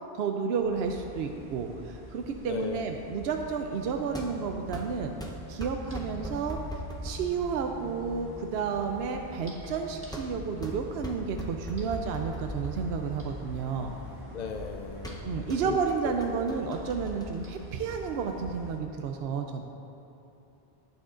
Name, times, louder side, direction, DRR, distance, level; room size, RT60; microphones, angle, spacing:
voice 1, 0.1-5.1 5.5-6.6 7.0-13.9 15.2-19.6, right 5 dB, 75° right, 4 dB, 0.8 m, -31 dB
sound 1, 0.6-18.8, left 1 dB, 20° right, 1.6 m, -45 dB
ball basketball drop, 2.3-18.5, right 1 dB, 5° left, 0.6 m, -42 dB
voice 2, 2.5-2.9 14.3-15.8, left 5 dB, 55° left, 3 dB, 0.5 m, -37 dB
19.0 x 6.3 x 2.5 m, 2.9 s
omnidirectional pair, 1.1 m